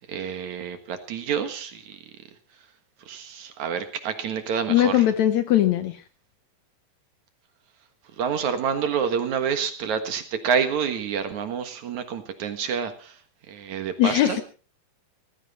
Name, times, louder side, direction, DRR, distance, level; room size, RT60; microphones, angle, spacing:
voice 1, 0.1-2.0 3.1-5.1 8.2-13.2 13.5-14.4, right 7 dB, 60° right, 8 dB, 2.6 m, -28 dB
voice 2, 4.7-6.0 14.0-14.4, left 12 dB, 70° left, 10 dB, 1.8 m, -20 dB
18.5 x 15.0 x 4.2 m, 0.36 s
omnidirectional pair, 4.0 m